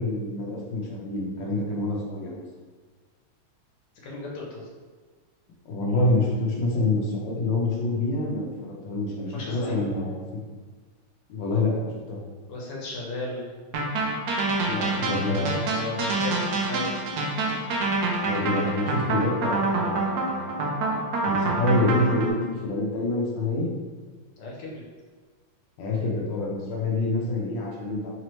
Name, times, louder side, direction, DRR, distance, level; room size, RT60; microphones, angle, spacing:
voice 1, 0.0-2.4 5.7-10.4 11.3-12.2 14.7-15.4 18.3-20.5 21.3-23.7 25.8-28.1, left 2 dB, 70° left, -3 dB, 1.5 m, -27 dB
voice 2, 4.0-4.6 9.3-9.9 12.5-13.5 15.2-16.9 24.4-24.8, left 2 dB, 90° left, -3 dB, 1.8 m, -35 dB
sound 1, 13.7-22.3, right 2 dB, 75° right, 0.9 m, -26 dB
4.0 x 2.9 x 3.1 m, 1.5 s
omnidirectional pair, 2.4 m